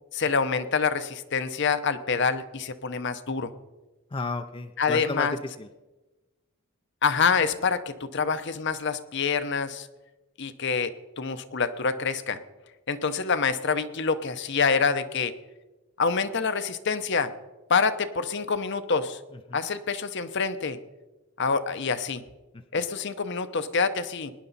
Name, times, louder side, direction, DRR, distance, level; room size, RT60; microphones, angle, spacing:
voice 1, 0.1-3.5 4.8-5.3 7.0-9.9 10.4-12.4 12.9-15.3 16.0-17.3 17.7-19.2 19.5-20.8 21.4-22.2 22.7-24.3, left 5 dB, 55° left, 11 dB, 0.8 m, -26 dB
voice 2, 4.1-5.7 19.5-19.6 22.5-22.9, left 3 dB, 25° left, 8 dB, 0.5 m, -33 dB
19.5 x 10.5 x 4.1 m, 1.1 s
head